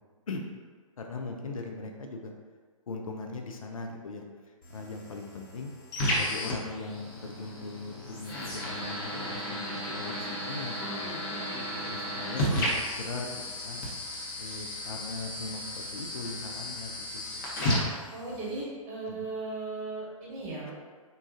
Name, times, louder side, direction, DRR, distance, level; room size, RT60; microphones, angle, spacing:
voice 1, 1.0-2.3 2.9-5.7 6.1-11.1 11.8-13.8 14.4-17.4 19.1-19.2, left 3 dB, 70° left, 3 dB, 0.5 m, -40 dB
sound 1, 4.6-18.6, left 1 dB, 35° left, 0.8 m, -34 dB
voice 2, 18.1-20.7, right 2 dB, 30° right, -6 dB, 1.1 m, -37 dB
3.8 x 2.4 x 2.6 m, 1.5 s
figure-of-eight pair, 120°, 18 cm